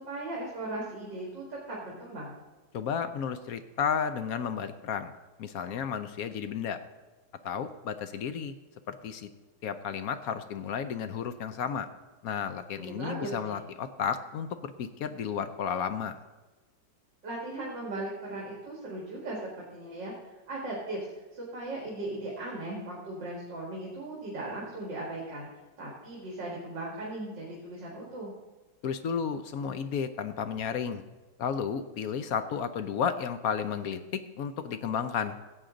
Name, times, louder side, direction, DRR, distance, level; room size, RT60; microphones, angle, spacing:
voice 1, 0.0-2.3 12.7-13.6 17.2-21.1 21.3-25.5 25.8-28.3, right 2 dB, 75° right, -4 dB, 2.7 m, -38 dB
voice 2, 2.7-5.1 5.4-6.8 7.4-8.5 8.9-9.3 9.6-11.9 12.2-16.2 28.8-31.0 31.4-35.4, left 7 dB, 65° left, 10 dB, 0.9 m, -32 dB
16.0 x 8.2 x 3.8 m, 1.2 s
omnidirectional pair, 2.0 m